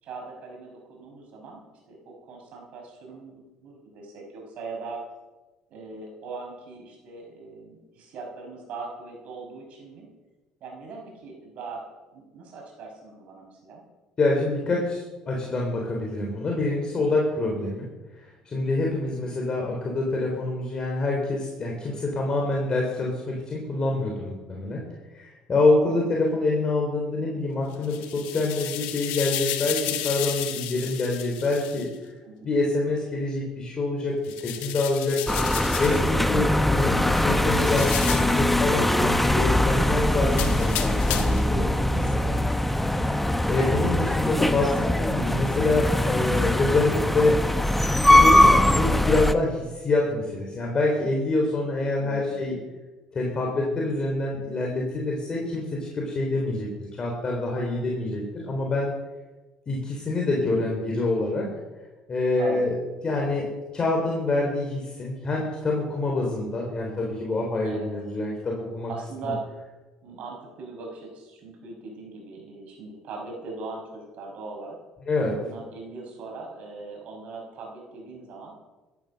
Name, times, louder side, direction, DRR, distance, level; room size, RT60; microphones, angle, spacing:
voice 1, 0.0-5.0 5.7-10.1 10.6-13.8 19.1-19.4 25.8-26.1 32.2-32.5 43.5-43.8 52.0-52.6 62.3-62.7 67.6-67.9 68.9-69.4 70.0-74.8 75.4-78.5, right 3 dB, 60° right, 1 dB, 5.6 m, -40 dB
voice 2, 14.2-17.9 18.2-24.8 25.1-31.9 32.4-34.2 34.4-35.2 35.8-42.4 43.5-44.7 45.0-47.4 48.0-52.6 53.1-56.7 57.0-58.9 59.7-61.5 62.1-62.7 63.0-63.5 63.7-68.9 69.2-69.3 75.1-75.3, left 2 dB, 35° left, -1 dB, 3.6 m, -26 dB
sound 1, 27.7-31.9 34.2-36.1 37.5-38.4 40.3-41.5, left 12 dB, 85° left, 1.7 m, -32 dB
sound 2, 35.3-49.3, left 1 dB, 5° left, 0.9 m, -22 dB
14.5 x 10.5 x 6.5 m, 1.2 s
supercardioid pair, 95°, 3 cm